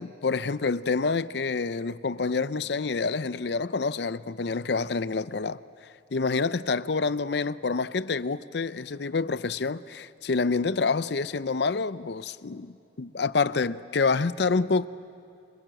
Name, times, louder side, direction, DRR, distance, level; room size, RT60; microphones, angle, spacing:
voice 1, 0.0-5.6 6.1-14.8, left 4 dB, 65° left, 0.6 m, -27 dB
29.0 x 26.0 x 7.7 m
head